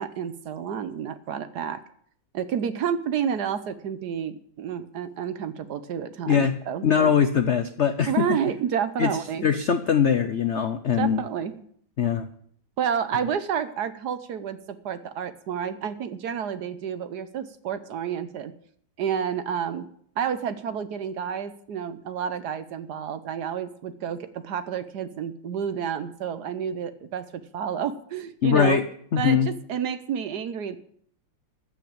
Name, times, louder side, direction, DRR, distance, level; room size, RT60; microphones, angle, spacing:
voice 1, 0.0-1.8 2.3-7.2 8.1-9.5 11.0-11.6 12.8-18.5 19.0-19.9 20.2-28.8 29.2-30.8, right 8 dB, 65° right, 12 dB, 1.2 m, -30 dB
voice 2, 6.8-8.1 9.0-9.1 9.4-11.2 12.0-12.3 28.4-28.8 29.1-29.5, left 7 dB, 75° left, 9 dB, 0.6 m, -21 dB
14.5 x 5.9 x 8.8 m, 0.63 s
omnidirectional pair, 2.1 m